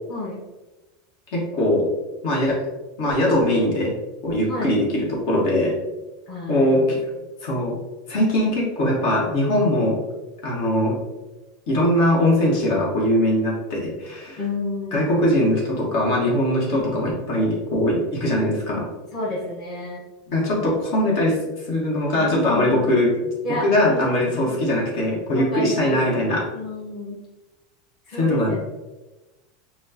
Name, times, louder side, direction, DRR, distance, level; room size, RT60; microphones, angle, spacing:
voice 1, 0.1-0.4 4.5-4.8 6.3-6.9 14.4-15.4 19.1-20.0 22.2-22.8 23.4-24.6 25.3-26.0 26.5-27.2 28.1-28.6, left 1 dB, 25° left, -6 dB, 1.1 m, -30 dB
voice 2, 1.3-1.9 2.2-2.6 3.0-3.9 4.2-5.7 6.5-7.0 7.4-7.8 8.1-10.0 10.4-11.0 11.7-14.4 14.9-18.9 20.3-21.4 21.7-23.3 23.6-26.4 28.1-28.6, left 1 dB, 55° left, -3 dB, 1.5 m, -21 dB
6.1 x 2.3 x 2.9 m, 1.1 s
supercardioid pair, 150°, 0 cm